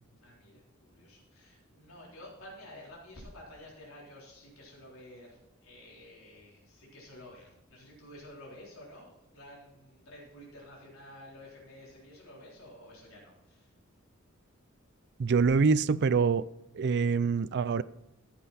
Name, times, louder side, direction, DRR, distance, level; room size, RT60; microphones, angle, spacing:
voice 1, 0.2-13.7, left 1 dB, 85° left, -4 dB, 3.8 m, -51 dB
voice 2, 15.2-16.4 16.8-17.8, right 5 dB, 55° right, 15 dB, 0.4 m, -25 dB
14.5 x 7.7 x 4.2 m, 0.89 s
head